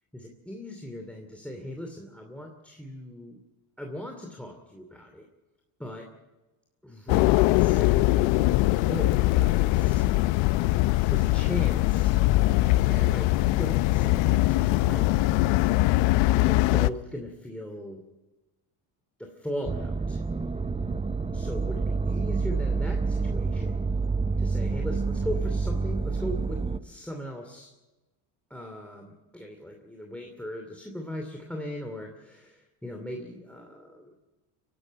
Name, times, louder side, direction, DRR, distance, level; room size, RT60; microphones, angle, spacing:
voice 1, 0.1-3.4 3.8-5.3 5.8-6.1 6.8-8.4 8.8-10.0 11.1-12.1 12.9-13.3 13.6-15.5 16.4-18.0 19.2-20.2 21.3-23.9 24.4-27.7 28.5-34.1, left 1 dB, 5° left, 3 dB, 2.7 m, -38 dB
sound 1, 7.1-16.9, left 18 dB, 65° left, 0.7 m, -22 dB
sound 2, 19.6-26.8, right 4 dB, 15° right, 0.7 m, -28 dB
23.5 x 12.0 x 9.3 m, 1.1 s
supercardioid pair, 90°, 48 cm